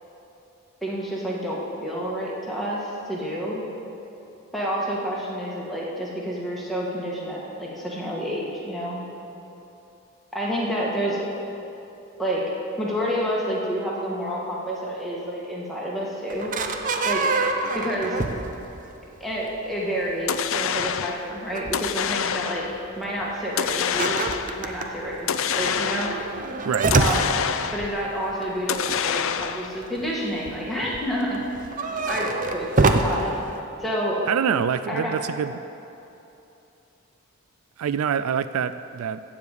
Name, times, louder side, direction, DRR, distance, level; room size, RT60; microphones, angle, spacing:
voice 1, 0.8-3.6 4.5-9.0 10.3-11.3 12.2-12.5 12.8-16.5 17.0-17.2 17.6-18.2 19.2-22.6 23.0-24.3 24.6-26.1 26.9-27.3 27.7-31.4 31.7-32.3 32.5-33.3 33.8-34.2 34.9-35.2, equal, ahead, -6 dB, 1.8 m, -29 dB
sound 1, 16.3-18.9 19.2-19.5 20.1-20.5 20.9-21.0 21.4-21.9 22.4-22.5 22.7-22.9 23.2-23.3 23.7-29.5 29.8-30.5 30.8-33.3, right 3 dB, 35° right, 0.6 m, -26 dB
sound 2, 20.3-21.2 21.7-22.8 23.6-24.6 25.3-26.3 26.9-28.0 28.7-29.8, left 8 dB, 60° left, 0.4 m, -26 dB
voice 2, 34.3-35.6 37.8-39.2, right 7 dB, 75° right, 13 dB, 0.3 m, -25 dB
15.0 x 5.1 x 8.4 m, 2.9 s
head